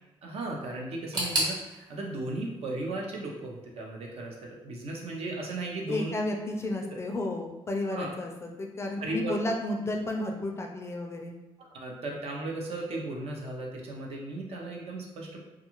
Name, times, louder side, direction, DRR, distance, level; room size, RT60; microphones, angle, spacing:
voice 1, 0.2-6.2 7.9-8.1 9.0-9.3 11.6-15.4, right 2 dB, 70° right, -1 dB, 0.6 m, -36 dB
sound 1, 1.1-4.0 4.3-5.1 5.4-5.5 6.3-6.4, right 1 dB, 45° right, 0.9 m, -35 dB
voice 2, 5.9-11.3, left 1 dB, 25° left, 2 dB, 0.4 m, -32 dB
2.4 x 2.4 x 2.9 m, 1.0 s
cardioid pair, 115°, 10 cm